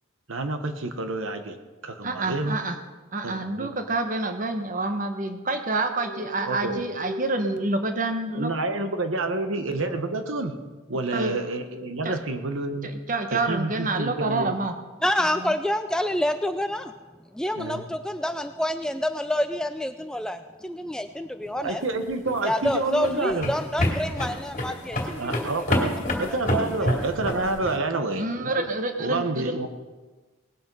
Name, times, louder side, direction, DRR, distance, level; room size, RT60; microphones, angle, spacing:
voice 1, 0.3-1.6 1.8-2.6 3.2-3.8 6.4-6.8 8.3-10.5 10.9-12.9 13.3-14.6 17.6-17.8 21.6-23.5 25.2-28.2 29.0-29.7, right 2 dB, 75° right, 7 dB, 1.1 m, -28 dB
voice 2, 2.0-2.8 3.1-8.5 11.1-11.4 12.0-12.2 12.8-14.8 28.2-29.6, right 2 dB, 40° right, 7 dB, 1.0 m, -27 dB
voice 3, 15.0-16.9 17.3-21.8 22.4-25.2, left 1 dB, 5° left, 8 dB, 0.3 m, -27 dB
sound 1, 22.1-27.8, left 1 dB, 40° left, 2.3 m, -28 dB
18.5 x 7.8 x 5.4 m, 1.3 s
head